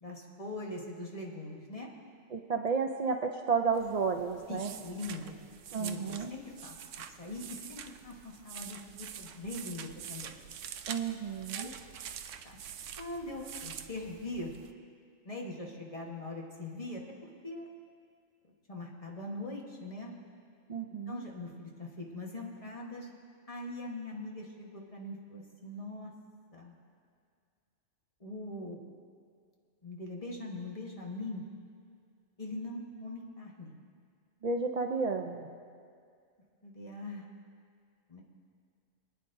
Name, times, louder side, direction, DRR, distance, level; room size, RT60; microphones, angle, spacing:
voice 1, 0.0-1.9 4.5-5.4 5.8-6.8 7.2-10.4 11.5-11.7 12.4-12.6 13.0-14.5 15.2-17.0 17.4-17.7 18.7-20.1 21.1-23.1 23.5-26.1 26.5-26.7 28.2-28.8 29.8-31.4 32.4-33.7 36.6-37.3 38.1-38.2, left 2 dB, 30° left, -1 dB, 1.3 m, -41 dB
voice 2, 2.3-4.7 5.7-6.3 10.9-11.7 20.7-21.2 34.4-35.5, right 5 dB, 50° right, 4 dB, 0.5 m, -32 dB
sound 1, 3.7-14.7, right 8 dB, 80° right, 0.9 m, -46 dB
26.0 x 9.5 x 2.6 m, 2.2 s
omnidirectional pair, 1.3 m